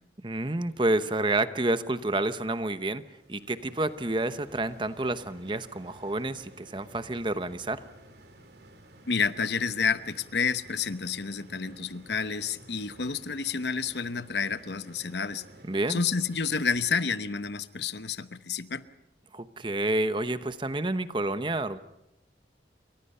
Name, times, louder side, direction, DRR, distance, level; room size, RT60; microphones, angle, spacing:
voice 1, 0.2-3.0 3.3-7.8 15.6-16.0 19.3-21.8, right 2 dB, 25° right, 12 dB, 0.9 m, -29 dB
sound 1, 3.1-17.6, right 1 dB, 70° right, 2.8 m, -53 dB
voice 2, 9.1-15.4 15.9-18.8, left 5 dB, 75° left, 13 dB, 1.0 m, -29 dB
29.0 x 24.0 x 5.6 m, 0.87 s
head